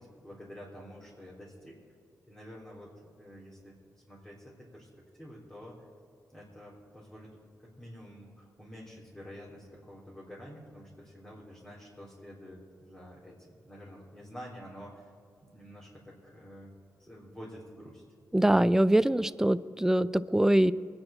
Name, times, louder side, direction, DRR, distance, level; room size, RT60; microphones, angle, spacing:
voice 1, 0.0-1.8 2.2-3.7 4.1-4.9 5.2-5.7 6.3-7.3 7.6-15.1 15.4-16.7 17.0-18.0, equal, 15° left, -6 dB, 3.7 m, -48 dB
voice 2, 18.3-20.7, right 1 dB, 5° right, 15 dB, 0.4 m, -23 dB
23.5 x 9.9 x 4.4 m, 2.3 s
cardioid pair, 75°, 6 cm